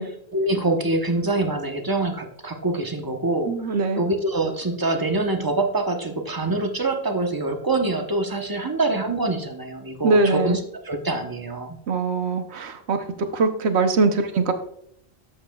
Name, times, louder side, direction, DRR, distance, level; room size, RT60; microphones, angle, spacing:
voice 1, 0.0-11.8, right 2 dB, 20° right, 4 dB, 0.9 m, -25 dB
voice 2, 3.5-4.0 10.0-10.6 11.9-13.0 13.3-14.5, right 3 dB, 85° right, 7 dB, 1.1 m, -22 dB
12.5 x 7.7 x 2.3 m, 0.73 s
omnidirectional pair, 1.1 m